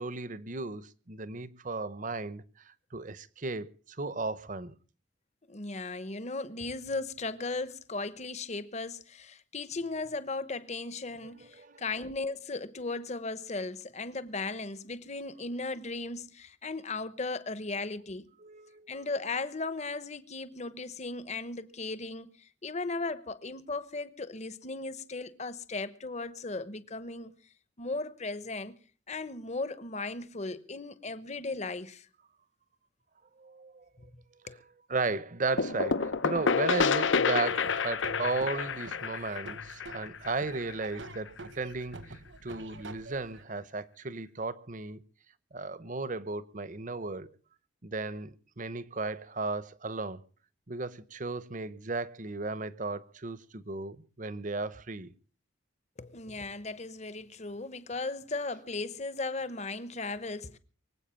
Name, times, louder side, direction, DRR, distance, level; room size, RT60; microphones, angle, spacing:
voice 1, 0.0-4.7 11.2-11.9 18.4-19.0 33.4-33.8 34.9-45.0 45.5-47.3 47.8-50.2 50.7-55.1, right 3 dB, 40° right, 0.9 m, -35 dB
voice 2, 5.5-18.3 18.9-27.3 27.8-28.8 29.1-32.1 34.5-34.6 56.0-60.6, left 3 dB, 35° left, 1.0 m, -36 dB
sound 1, 35.6-41.2, left 5 dB, 70° left, 0.8 m, -29 dB
Laughter / Drum, 37.5-43.4, right 2 dB, 65° right, 1.4 m, -46 dB
23.5 x 8.3 x 7.0 m
head